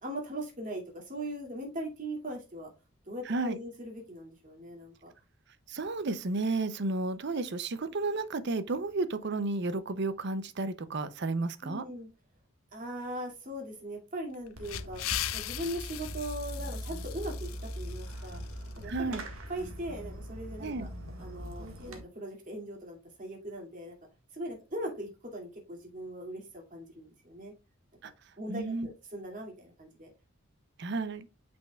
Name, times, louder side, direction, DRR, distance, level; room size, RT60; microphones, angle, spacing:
voice 1, 0.0-2.7 3.1-5.1 11.6-12.1 12.7-15.0 15.3-18.4 18.8-19.2 19.5-20.9 21.2-23.9 24.3-27.5 28.0-30.1, right 1 dB, 40° right, 2.4 m, -40 dB
voice 2, 3.2-3.6 5.7-11.8 18.8-19.2 20.6-20.9 28.0-28.1 28.5-28.9 30.8-31.3, right 3 dB, 55° right, 0.6 m, -32 dB
sound 1, 14.3-18.9, left 14 dB, 80° left, 0.5 m, -39 dB
Fireworks, 14.6-22.0, equal, 90° right, 1.7 m, -41 dB
8.7 x 5.2 x 2.3 m
head